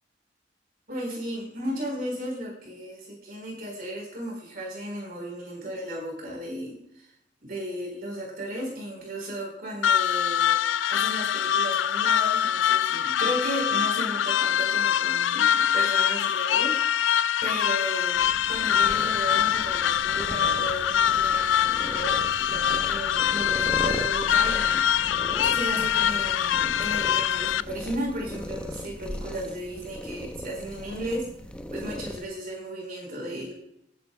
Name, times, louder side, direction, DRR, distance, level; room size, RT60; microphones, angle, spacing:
voice 1, 0.9-6.7 7.4-10.6 10.9-16.8 17.4-24.8 25.4-31.3 31.7-33.5, equal, 50° right, -1 dB, 4.1 m, -35 dB
sound 1, 9.8-27.6, left 9 dB, 85° left, 0.4 m, -24 dB
sound 2, 18.1-32.3, equal, 5° left, 0.8 m, -38 dB
26.5 x 9.5 x 2.2 m, 0.75 s
head